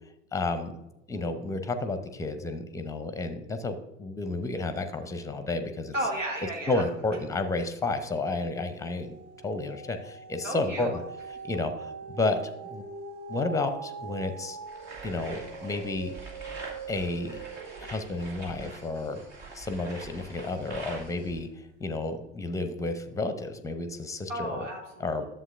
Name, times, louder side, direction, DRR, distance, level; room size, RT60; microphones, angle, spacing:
voice 1, 0.3-0.8 1.1-5.9 6.7-9.2 9.4-11.0 11.4-12.8 13.3-14.6 15.0-16.1 16.9-17.4 17.8-19.2 19.5-24.6 25.0-25.2, left 2 dB, 10° left, 9 dB, 0.7 m, -31 dB
voice 2, 5.9-6.8 10.4-11.0 24.3-25.1, right 1 dB, 85° right, -1 dB, 1.5 m, -33 dB
sound 1, 7.3-7.8 8.2-20.7 21.2-21.3, right 5 dB, 45° right, 0.8 m, -43 dB
sound 2, 14.7-21.4, right 3 dB, 60° right, 2.3 m, -45 dB
11.0 x 7.3 x 2.5 m, 0.90 s
figure-of-eight pair, 75°, 37 cm